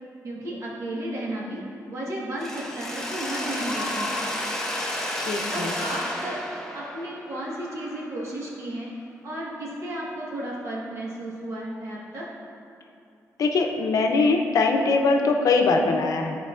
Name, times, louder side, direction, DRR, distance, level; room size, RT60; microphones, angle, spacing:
voice 1, 0.2-1.6 1.8-4.3 5.5-6.4 6.7-8.9 9.2-12.3, right 1 dB, 55° right, -5 dB, 1.4 m, -33 dB
Mechanisms, 2.4-8.3, left 1 dB, 10° left, 0.8 m, -32 dB
voice 2, 5.3-5.7 13.4-16.4, left 3 dB, 70° left, 3 dB, 0.6 m, -22 dB
10.5 x 4.5 x 2.5 m, 2.6 s
wide cardioid pair, 160°, 6 cm